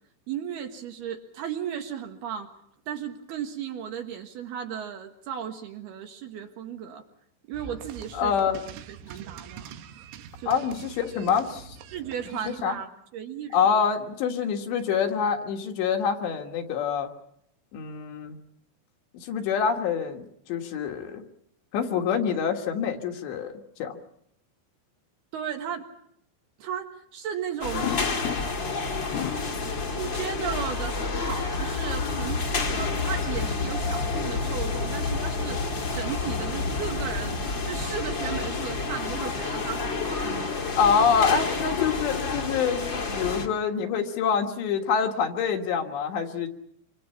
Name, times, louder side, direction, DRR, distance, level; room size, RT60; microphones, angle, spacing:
voice 1, 0.3-2.5 2.9-7.0 7.5-8.3 8.9-9.7 10.4-10.6 11.9-12.9 13.1-13.6 25.3-25.9 26.6-27.9 29.9-35.6 35.9-37.4 37.7-40.7, right 8 dB, 65° right, 4 dB, 3.2 m, -35 dB
sound 1, 7.5-12.6, right 8 dB, 85° right, 3.9 m, -44 dB
voice 2, 8.1-8.6 10.5-11.8 12.5-12.7 13.5-17.1 17.7-18.4 19.1-21.2 21.7-24.0 40.8-46.5, left 6 dB, 70° left, 4 dB, 3.7 m, -26 dB
sound 2, 27.6-43.5, left 4 dB, 35° left, 1.9 m, -29 dB
sound 3, 27.8-28.8 29.1-29.6 30.8-31.6 34.2-35.3 36.7-36.9 37.2-37.3 38.9-40.1, left 10 dB, 85° left, 3.9 m, -38 dB
27.0 x 26.0 x 5.7 m, 0.72 s
omnidirectional pair, 5.6 m